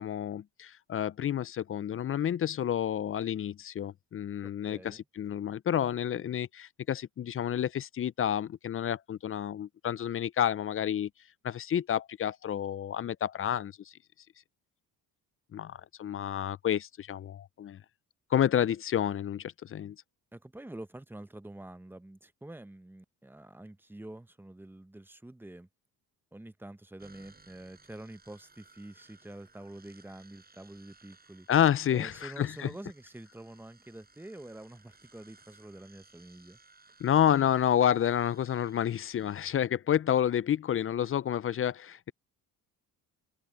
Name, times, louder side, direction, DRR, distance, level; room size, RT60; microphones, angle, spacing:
voice 1, 0.0-11.1 11.4-13.7 15.5-17.8 18.3-20.0 31.5-32.7 37.0-42.1, left 10 dB, 35° left, 0.4 m, -29 dB
voice 2, 4.4-5.0 20.3-25.7 26.3-31.5 31.9-36.6, right 1 dB, 5° right, 0.8 m, -47 dB
sound 1, 27.0-39.5, right 3 dB, 25° right, 7.3 m, -61 dB
cardioid pair, 85°, 39 cm